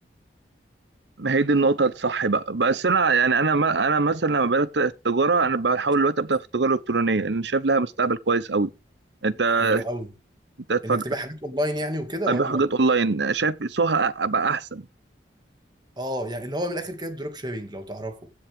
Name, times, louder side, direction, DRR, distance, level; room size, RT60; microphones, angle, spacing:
voice 1, 1.2-8.7 9.2-9.8 10.7-11.0 12.3-14.8, right 4 dB, 75° right, 0.9 m, -22 dB
voice 2, 9.5-10.1 10.8-12.6 16.0-18.2, equal, 25° right, 2.2 m, -30 dB
16.0 x 7.4 x 3.6 m
head